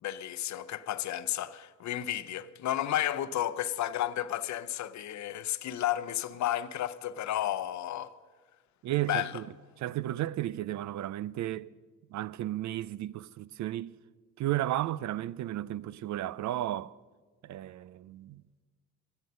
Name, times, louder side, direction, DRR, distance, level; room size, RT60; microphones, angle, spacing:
voice 1, 0.0-8.1 9.1-9.3, left 12 dB, 65° left, 0.7 m, -32 dB
voice 2, 8.8-9.5 9.8-11.7 12.1-13.9 14.4-17.0 17.4-18.6, right 14 dB, 70° right, 0.5 m, -33 dB
23.5 x 8.2 x 5.4 m
cardioid pair, 90°, 30 cm